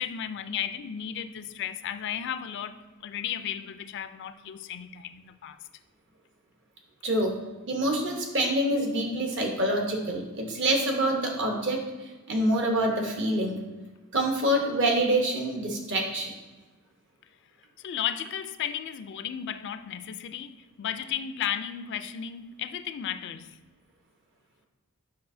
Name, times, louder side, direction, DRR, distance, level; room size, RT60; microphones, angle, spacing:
voice 1, 0.0-5.6 17.8-23.6, left 9 dB, 55° left, 11 dB, 0.3 m, -34 dB
voice 2, 7.0-7.3 7.7-11.8 12.3-13.6 14.1-16.3, right 1 dB, 55° right, 2 dB, 1.0 m, -26 dB
6.7 x 5.5 x 2.6 m, 1.2 s
head